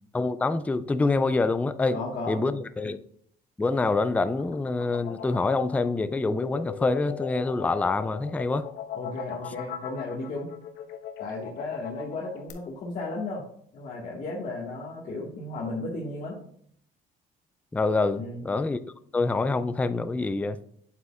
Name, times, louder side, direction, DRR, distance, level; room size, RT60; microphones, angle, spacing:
voice 1, 0.1-2.0 2.3-3.0 3.6-8.7 17.7-18.8 19.1-20.6, left 3 dB, 10° left, 0.3 m, -26 dB
voice 2, 1.9-2.4 8.9-10.5 11.2-13.4 13.7-16.4 18.1-18.4, left 2 dB, 45° left, 1.6 m, -34 dB
sound 1, 4.0-12.5, left 8 dB, 75° left, 1.1 m, -39 dB
8.3 x 7.7 x 2.4 m
cardioid pair, 110°, 17 cm